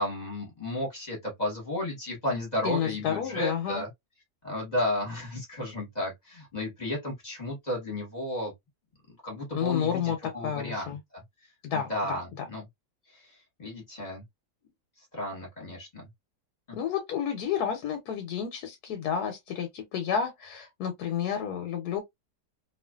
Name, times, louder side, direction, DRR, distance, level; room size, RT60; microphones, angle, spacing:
voice 1, 0.0-3.9 4.4-8.5 9.1-11.2 11.7-12.6 13.1-13.3 13.6-14.2 15.1-16.1, left 1 dB, 30° left, 1.2 m, -33 dB
voice 2, 2.6-3.8 9.5-10.2 10.4-11.0 11.6-12.4 16.7-22.0, left 8 dB, 75° left, 1.2 m, -30 dB
2.8 x 2.4 x 2.2 m
omnidirectional pair, 1.8 m